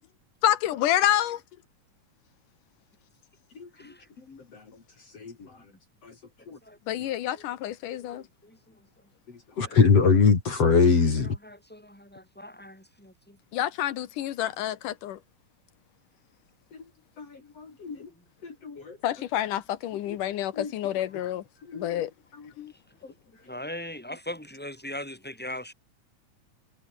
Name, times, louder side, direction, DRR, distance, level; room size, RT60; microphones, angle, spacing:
voice 1, 0.4-1.4 6.9-8.2 13.5-15.2 19.0-21.4 21.7-22.1 22.6-22.7, left 12 dB, 85° left, 2.9 m, -28 dB
voice 2, 6.6-7.0 7.3-7.4 7.9-8.9 9.6-9.9 11.2-13.4 17.9-18.2 23.4-25.7, left 1 dB, 5° left, 7.5 m, -41 dB
voice 3, 9.6-11.3 17.6-18.0 18.6-18.8 20.6-20.7, left 5 dB, 50° left, 4.5 m, -21 dB
omnidirectional pair, 3.6 m